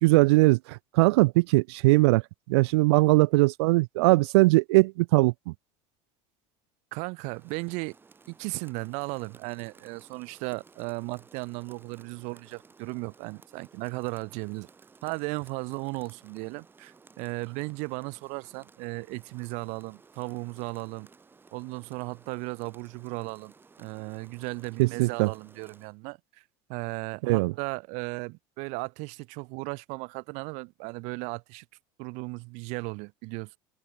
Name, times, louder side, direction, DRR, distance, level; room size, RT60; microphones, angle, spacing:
voice 1, 0.0-2.2 2.5-5.5 24.8-25.3 27.2-27.5, right 23 dB, 85° right, 0.6 m, -21 dB
voice 2, 6.9-7.9 8.3-14.7 15.0-21.1 21.5-26.4 26.7-31.6 32.0-33.6, right 30 dB, 65° right, 1.1 m, -36 dB
Rain, 7.2-26.0, right 4 dB, 15° right, 5.0 m, -57 dB
cardioid pair, 140°, 13 cm